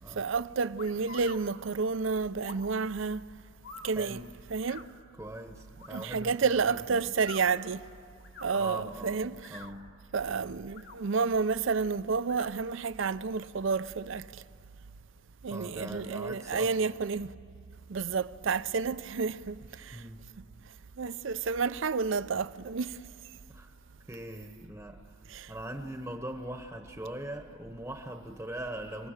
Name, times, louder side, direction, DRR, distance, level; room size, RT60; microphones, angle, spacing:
voice 1, 0.1-3.2 3.8-4.9 5.9-7.8 8.4-9.6 10.1-14.3 15.4-17.3 17.9-20.0 21.0-23.0 25.3-25.5, right 5 dB, 70° right, 0.5 m, -30 dB
sound 1, 0.8-1.4 2.4-2.7 3.6-3.9 4.7-4.9 5.8-6.1 7.1-7.5 8.2-8.5 9.3-9.8 10.6-11.0 12.2-12.5, left 5 dB, 55° left, 1.8 m, -46 dB
voice 2, 4.0-4.3 5.2-7.1 8.5-10.0 15.5-17.0 19.7-20.3 23.5-23.7 24.1-25.1 25.5-29.1, right 1 dB, 10° right, 1.0 m, -41 dB
29.0 x 20.0 x 6.5 m
head